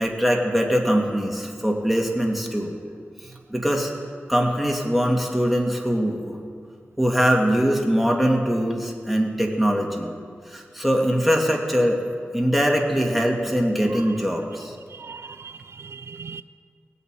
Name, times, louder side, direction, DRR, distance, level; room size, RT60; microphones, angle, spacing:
voice 1, 0.0-2.8 3.5-3.9 4.3-6.4 7.0-10.1 10.5-12.0 12.3-14.7, equal, ahead, 2.3 m, -22 dB
voice 2, 14.9-16.4, right 5 dB, 75° right, 0.4 m, -39 dB
17.0 x 8.4 x 9.2 m
wide cardioid pair, 70°, 4 cm